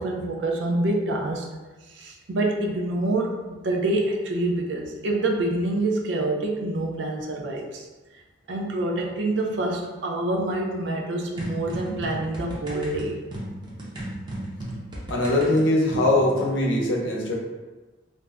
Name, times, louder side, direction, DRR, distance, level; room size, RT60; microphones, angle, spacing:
voice 1, 0.0-1.5 1.9-7.9 8.5-13.2, right 2 dB, 75° right, 1 dB, 0.5 m, -26 dB
sound 1, 11.4-16.5, right 1 dB, 25° right, 0.5 m, -36 dB
voice 2, 15.1-17.3, left 1 dB, 85° left, -2 dB, 0.6 m, -21 dB
2.5 x 2.1 x 3.3 m, 1.2 s
head